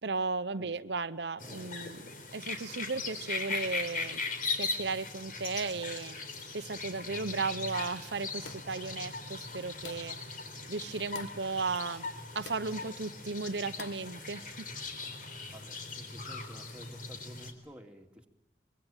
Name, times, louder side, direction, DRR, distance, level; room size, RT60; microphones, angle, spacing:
voice 1, 0.0-4.2 4.5-6.1 6.5-10.2 10.7-12.1 12.3-14.5, right 4 dB, 70° right, 10 dB, 0.9 m, -35 dB
sound 1, 1.4-17.5, left 4 dB, 50° left, 3.9 m, -39 dB
voice 2, 1.4-1.8 15.5-18.3, equal, 5° right, 1 dB, 2.8 m, -52 dB
sound 2, 8.4-8.8 9.8-10.2 11.1-11.4 12.5-12.7 13.8-14.1, left 5 dB, 80° left, 1.6 m, -47 dB
25.0 x 23.5 x 9.0 m, 0.94 s
head